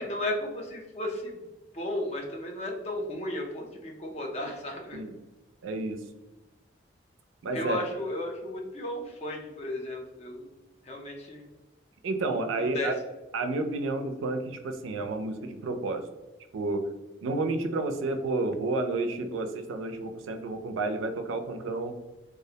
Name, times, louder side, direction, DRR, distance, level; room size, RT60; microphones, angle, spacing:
voice 1, 0.0-1.4 1.7-5.0 7.5-10.5 10.8-11.5 12.6-12.9, left 1 dB, 30° left, 0 dB, 0.4 m, -34 dB
voice 2, 5.6-6.0 7.4-7.8 12.0-12.9 13.3-16.0 16.5-16.8 17.2-21.9, right 2 dB, 75° right, 6 dB, 0.3 m, -30 dB
2.4 x 2.0 x 2.7 m, 1.1 s
head